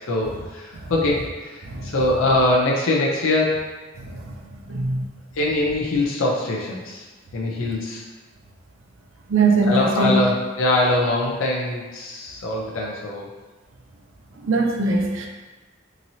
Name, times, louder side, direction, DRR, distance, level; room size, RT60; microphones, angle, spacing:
voice 1, 0.1-3.6 5.4-7.0 7.3-8.0 9.7-13.3, left 2 dB, 85° left, -2 dB, 0.5 m, -23 dB
voice 2, 4.7-5.0 9.3-10.2 14.4-15.3, right 3 dB, 75° right, 2 dB, 0.5 m, -20 dB
3.0 x 2.7 x 2.7 m, 1.3 s
head